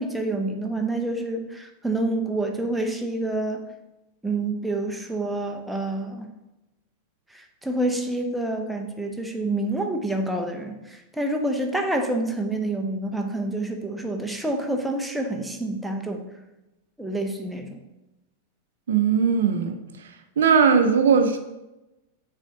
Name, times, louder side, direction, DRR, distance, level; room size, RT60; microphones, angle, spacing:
voice 1, 0.0-3.6 4.2-6.3 7.3-16.3 17.0-17.8, right 2 dB, 5° right, 3 dB, 0.8 m, -28 dB
voice 2, 18.9-19.7 20.4-21.4, right 6 dB, 60° right, 7 dB, 0.6 m, -19 dB
6.4 x 4.2 x 3.9 m, 0.97 s
figure-of-eight pair, 90°, 0 cm